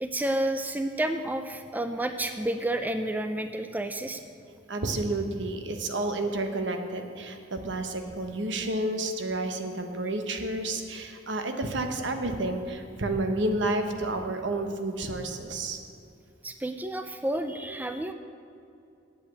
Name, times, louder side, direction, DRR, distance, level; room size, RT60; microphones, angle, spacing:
voice 1, 0.0-4.2 16.4-18.1, right 1 dB, 10° right, 8 dB, 0.4 m, -30 dB
voice 2, 4.7-15.8, right 2 dB, 70° right, 6 dB, 1.0 m, -30 dB
8.4 x 8.0 x 8.1 m, 2.5 s
head